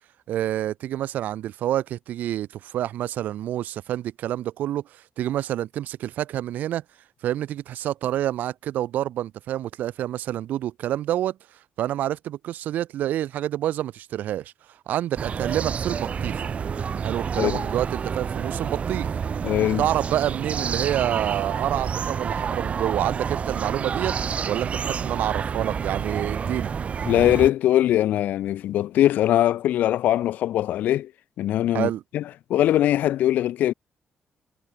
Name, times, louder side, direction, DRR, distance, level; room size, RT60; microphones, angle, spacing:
voice 1, 0.3-6.8 7.2-11.4 11.8-16.5 17.0-19.2 19.8-26.7 31.7-32.0, right 12 dB, 85° right, 5.1 m, -28 dB
sound 1, 15.2-27.5, right 6 dB, 50° right, 5.4 m, -29 dB
voice 2, 19.4-19.8 27.1-31.1 31.4-32.2 32.5-33.7, left 12 dB, 85° left, 3.6 m, -21 dB
cardioid pair, 90°, 3 cm